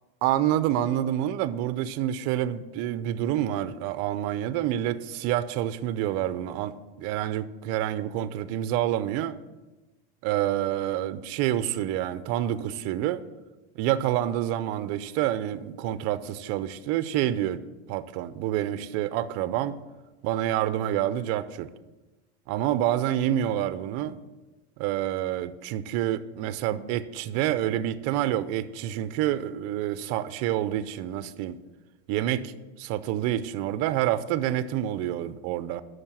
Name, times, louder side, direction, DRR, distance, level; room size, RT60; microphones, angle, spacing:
voice 1, 0.2-9.4 10.2-13.2 13.8-17.6 17.9-19.8 20.2-21.7 22.5-24.2 24.8-31.6 32.1-35.8, right 12 dB, 50° right, 14 dB, 0.7 m, -28 dB
8.9 x 6.6 x 7.5 m, 1.1 s
supercardioid pair, 135°, 33 cm